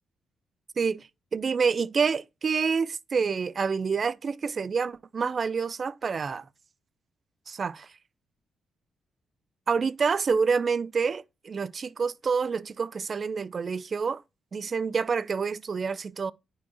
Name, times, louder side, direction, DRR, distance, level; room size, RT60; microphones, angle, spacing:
voice 1, 0.8-6.5 7.5-7.9 9.7-14.2 14.5-16.3, right 5 dB, 50° right, 0.4 m, -28 dB
9.4 x 4.5 x 2.7 m
supercardioid pair, 60°, 0 cm